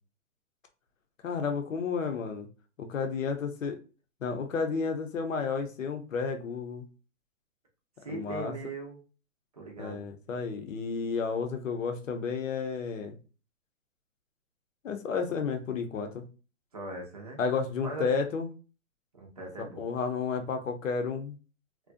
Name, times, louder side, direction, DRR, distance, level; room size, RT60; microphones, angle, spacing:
voice 1, 1.2-2.5 2.8-3.8 4.2-6.9 8.1-8.5 9.8-13.2 14.8-16.2 17.4-18.5 19.6-21.4, left 5 dB, 75° left, 0.8 m, -32 dB
voice 2, 8.0-9.0 9.5-10.1 16.7-17.4 17.8-18.1 19.1-19.9, right 2 dB, 30° right, 0.5 m, -40 dB
2.5 x 2.2 x 2.5 m
hypercardioid pair, 165°, 39 cm